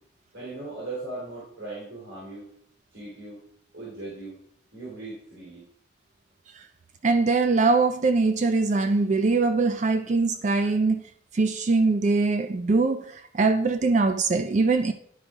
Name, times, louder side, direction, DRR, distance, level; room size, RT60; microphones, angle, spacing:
voice 1, 0.3-2.5 2.9-3.4 3.7-4.4 4.7-5.6, right 2 dB, 70° right, 3.4 m, -38 dB
voice 2, 7.0-11.0 11.3-14.9, right 3 dB, 35° right, 0.3 m, -22 dB
11.0 x 5.0 x 3.6 m
head